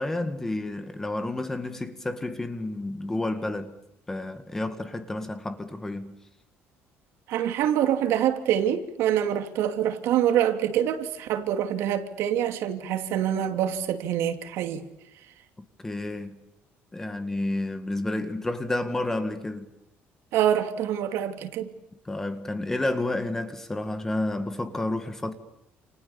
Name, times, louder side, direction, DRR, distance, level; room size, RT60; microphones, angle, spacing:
voice 1, 0.0-3.7 4.1-6.2 15.8-16.4 16.9-19.7 22.1-25.3, left 2 dB, 10° left, 1.9 m, -30 dB
voice 2, 7.3-14.9 20.3-21.7, right 10 dB, 70° right, 2.8 m, -25 dB
29.0 x 29.0 x 7.1 m
cardioid pair, 180°, 5 cm